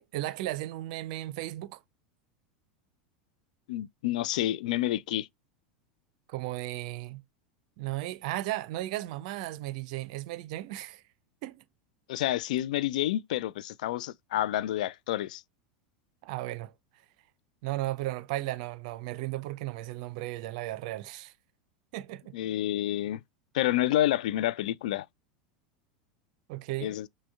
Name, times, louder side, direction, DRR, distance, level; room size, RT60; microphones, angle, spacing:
voice 1, 0.0-1.8 6.3-7.2 7.8-11.0 11.4-11.6 16.2-16.7 17.6-21.3 21.9-22.3 26.5-26.9, right 16 dB, 60° right, 0.5 m, -35 dB
voice 2, 3.7-5.3 12.1-15.4 22.3-23.2 23.5-25.1 26.8-27.1, left 13 dB, 65° left, 0.3 m, -29 dB
6.1 x 2.2 x 3.5 m
hypercardioid pair, 85°, 4 cm